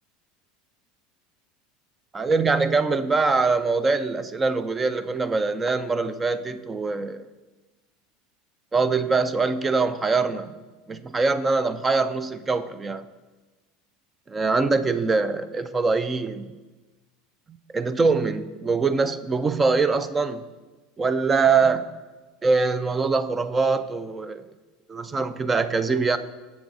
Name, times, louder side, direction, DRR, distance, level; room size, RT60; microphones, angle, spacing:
voice 1, 2.1-7.3 8.7-10.5 10.9-13.0 14.3-16.5 17.7-20.4 21.0-21.9 22.4-24.4 24.9-26.2, right 4 dB, 15° right, 13 dB, 0.3 m, -23 dB
7.2 x 7.0 x 3.8 m, 1.2 s
supercardioid pair, 160°, 0 cm